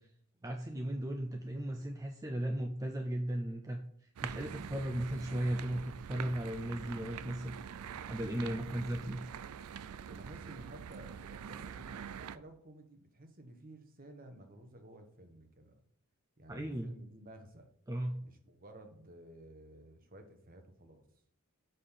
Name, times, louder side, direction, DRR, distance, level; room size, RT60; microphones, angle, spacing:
voice 1, 0.4-7.5 8.0-9.2 16.5-16.9 17.9-18.2, right 1 dB, 15° right, 4 dB, 0.5 m, -36 dB
sound 1, 4.2-12.4, right 7 dB, 80° right, 0.4 m, -45 dB
voice 2, 6.8-7.2 7.5-7.9 10.1-15.8 16.4-17.7 18.2-21.1, right 1 dB, 40° right, 6 dB, 1.1 m, -54 dB
6.7 x 5.2 x 5.6 m, 0.66 s
head